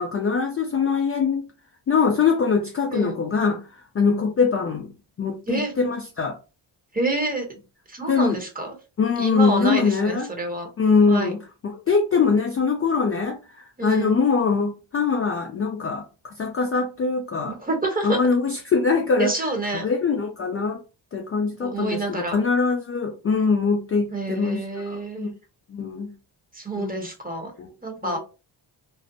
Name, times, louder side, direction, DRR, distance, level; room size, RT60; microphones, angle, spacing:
voice 1, 0.0-1.5 1.9-3.6 3.9-4.9 5.2-6.4 8.1-8.4 9.0-10.3 10.8-11.4 11.9-17.6 18.0-19.3 19.8-20.8 21.1-25.3 25.7-26.1 26.8-27.1 27.6-27.7 28.0-28.2, left 5 dB, 30° left, 0.4 m, -22 dB
voice 2, 6.9-7.4 7.9-8.7 9.2-10.7 11.1-11.3 13.8-14.2 17.4-18.2 19.2-19.9 21.6-22.4 24.1-25.3 26.5-27.5 27.8-28.2, right 2 dB, 20° right, 0.9 m, -27 dB
2.5 x 2.0 x 2.6 m
cardioid pair, 65°, 47 cm